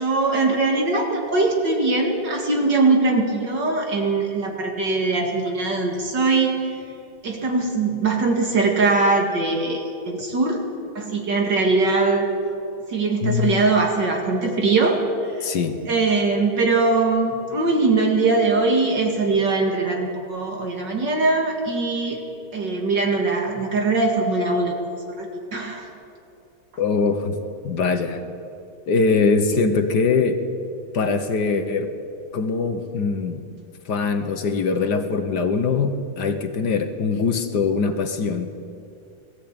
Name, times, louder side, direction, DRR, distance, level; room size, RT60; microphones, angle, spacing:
voice 1, 0.0-6.8 7.2-10.6 10.9-12.3 12.9-15.6 15.9-22.2 22.5-24.8 25.2-25.8, right 3 dB, 60° right, 2 dB, 2.6 m, -21 dB
voice 2, 15.4-15.8 26.8-27.4 27.6-28.2 28.9-30.4 30.9-31.9 32.3-33.5 33.8-38.5, left 4 dB, 60° left, 7 dB, 1.6 m, -22 dB
21.0 x 14.5 x 8.8 m, 2.6 s
omnidirectional pair, 2.2 m